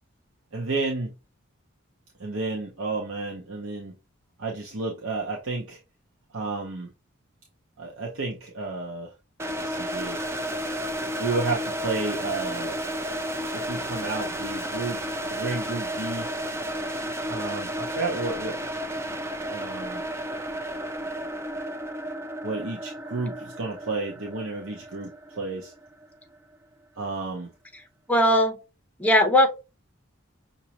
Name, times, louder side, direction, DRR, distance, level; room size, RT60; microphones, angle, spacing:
voice 1, 0.5-1.1 2.2-3.9 4.4-5.8 6.3-6.9 7.8-9.1 9.6-10.2 11.2-12.8 13.5-15.0 15.3-16.3 17.3-18.6 19.5-20.0 22.4-25.7 27.0-27.5, right 3 dB, 80° right, 1.0 m, -31 dB
sound 1, 9.4-26.2, equal, 15° right, 0.4 m, -32 dB
voice 2, 28.1-28.5 29.0-29.5, left 1 dB, 5° left, 0.8 m, -18 dB
6.1 x 2.8 x 2.9 m
head